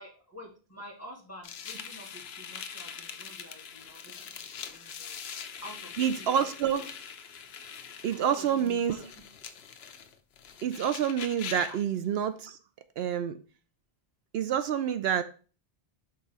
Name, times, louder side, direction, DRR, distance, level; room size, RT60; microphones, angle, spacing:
voice 1, 0.0-5.2 5.6-6.5 6.8-6.9 8.1-9.1 11.7-11.8, equal, 15° left, -1 dB, 1.6 m, -48 dB
sound 1, 1.4-11.8, left 7 dB, 75° left, 0.9 m, -43 dB
voice 2, 6.0-6.8 8.0-9.0 10.6-12.6 13.0-13.4 14.3-15.2, right 9 dB, 75° right, 11 dB, 0.8 m, -28 dB
5.5 x 3.7 x 5.3 m, 0.37 s
omnidirectional pair, 1.0 m